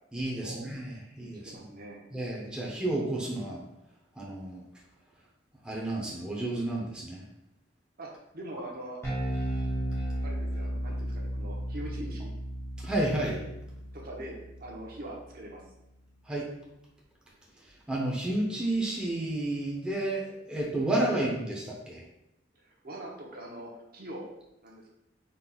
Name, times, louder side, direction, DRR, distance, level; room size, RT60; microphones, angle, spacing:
voice 1, 0.1-1.6 2.1-3.6 4.2-4.6 5.6-7.2 12.8-13.4 16.2-16.5 17.9-22.0, right 1 dB, 5° right, -4 dB, 0.8 m, -31 dB
voice 2, 1.4-2.0 8.0-9.0 10.2-12.3 13.9-15.6 21.1-21.2 22.5-24.3 24.6-24.9, right 1 dB, 55° right, -1 dB, 1.0 m, -43 dB
Bass guitar, 9.0-15.5, equal, 15° left, 1.6 m, -34 dB
5.4 x 4.0 x 2.4 m, 0.88 s
head